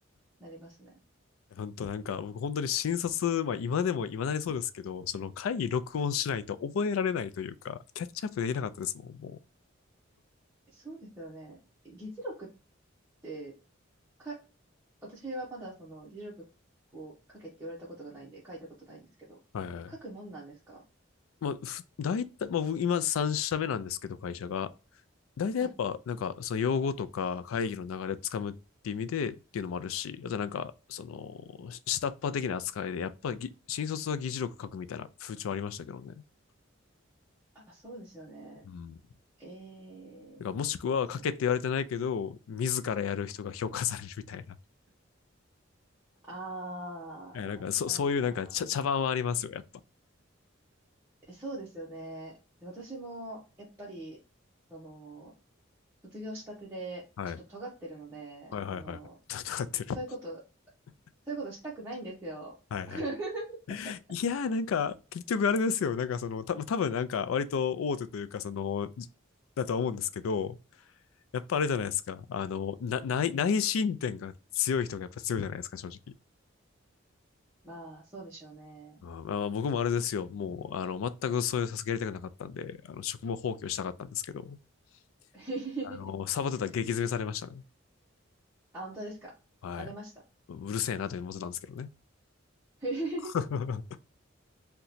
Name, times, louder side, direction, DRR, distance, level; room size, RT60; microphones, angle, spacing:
voice 1, 0.4-1.0 10.7-11.6 11.8-12.5 13.2-13.5 14.2-14.4 15.0-16.5 16.9-19.4 19.9-20.8 25.6-25.7 37.5-38.6 39.4-40.4 46.3-48.4 51.3-52.3 52.6-54.2 54.7-55.3 56.1-57.0 57.5-59.2 59.9-60.4 61.3-62.5 62.9-63.6 73.3-73.4 77.6-79.0 85.3-86.1 88.7-89.3 89.8-90.1 92.8-93.4, right 2 dB, 10° right, 0.7 m, -41 dB
voice 2, 1.5-9.4 19.5-19.9 21.4-24.7 25.4-28.5 28.8-36.2 38.6-39.0 40.4-44.6 47.3-49.6 57.2-57.4 58.5-59.0 59.3-60.0 62.7-63.0 63.7-69.1 69.6-70.6 71.3-76.0 79.0-84.6 86.0-87.6 89.6-89.9 90.5-91.9 93.3-93.8, left 7 dB, 90° left, 0.3 m, -32 dB
2.8 x 2.2 x 3.9 m
head